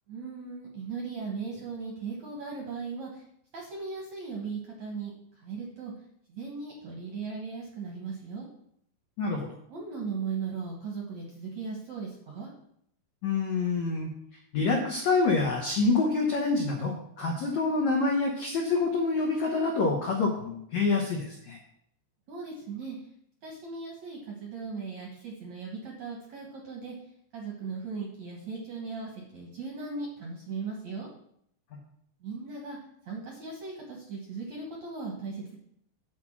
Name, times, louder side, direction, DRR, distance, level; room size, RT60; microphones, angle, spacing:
voice 1, 0.1-3.2 3.5-5.9 6.3-8.5 9.7-12.5 22.3-23.0 23.4-26.9 27.3-31.1 32.2-32.8 33.1-35.6, right 4 dB, 60° right, -2 dB, 1.9 m, -38 dB
voice 2, 9.2-9.5 13.2-14.1 14.5-21.6, left 3 dB, 85° left, -1 dB, 1.5 m, -27 dB
8.4 x 4.5 x 7.3 m, 0.71 s
omnidirectional pair, 5.0 m